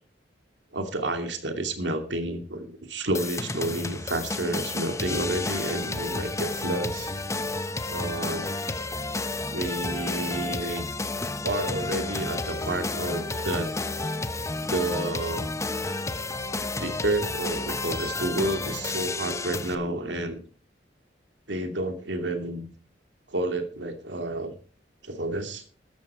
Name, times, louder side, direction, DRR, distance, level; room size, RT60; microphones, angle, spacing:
voice 1, 0.7-7.1 7.9-8.5 9.5-10.9 11.4-13.7 14.6-15.5 16.8-20.4 21.5-22.7 23.3-24.5 25.0-25.6, right 1 dB, 85° right, 6 dB, 2.6 m, -30 dB
sound 1, 3.1-19.7, left 2 dB, 15° left, 0.9 m, -31 dB
14.0 x 11.5 x 4.8 m, 0.42 s
head